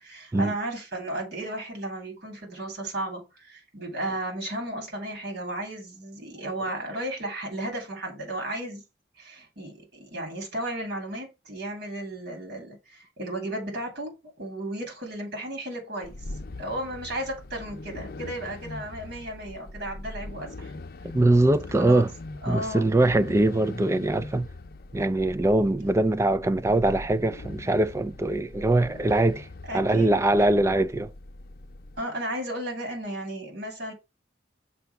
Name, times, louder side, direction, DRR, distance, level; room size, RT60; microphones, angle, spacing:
voice 1, 0.0-8.8 9.2-16.1 16.6-20.7 21.8-22.1 22.4-22.9 29.7-30.5 32.0-33.9, right 1 dB, 60° right, 2.9 m, -34 dB
sound 1, 16.0-32.0, left 2 dB, 60° left, 0.6 m, -41 dB
voice 2, 21.1-22.1 22.5-24.5 24.9-29.5 29.7-31.1, right 2 dB, 15° right, 0.4 m, -22 dB
6.8 x 2.9 x 5.6 m
head